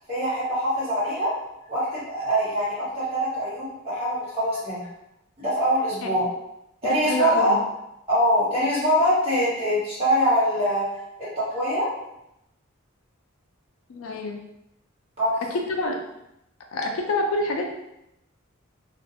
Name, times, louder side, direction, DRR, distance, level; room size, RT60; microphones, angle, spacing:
voice 1, 0.1-1.3 1.7-4.9 5.4-6.3 6.8-7.6 8.1-10.9 11.2-11.9 15.2-15.3, equal, 30° right, -10 dB, 1.4 m, -23 dB
voice 2, 6.8-7.6 13.9-14.4 15.5-16.0 16.7-17.7, left 2 dB, 80° left, 2 dB, 0.4 m, -27 dB
2.4 x 2.2 x 2.7 m, 0.83 s
head